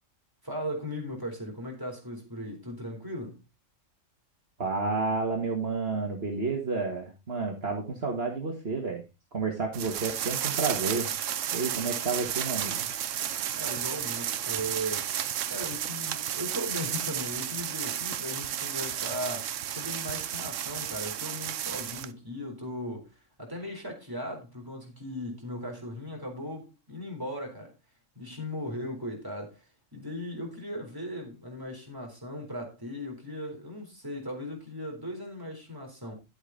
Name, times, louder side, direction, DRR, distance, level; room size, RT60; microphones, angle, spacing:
voice 1, 0.4-3.4 13.5-15.1 15.5-23.1 23.4-27.7 28.2-29.7 29.9-36.1, equal, 15° right, 3.8 m, -37 dB
voice 2, 4.6-9.0 9.3-11.1 11.5-12.9, right 4 dB, 50° right, 2.0 m, -30 dB
sound 1, 9.7-22.1, right 10 dB, 75° right, 1.1 m, -32 dB
11.5 x 8.0 x 3.9 m
omnidirectional pair, 1.3 m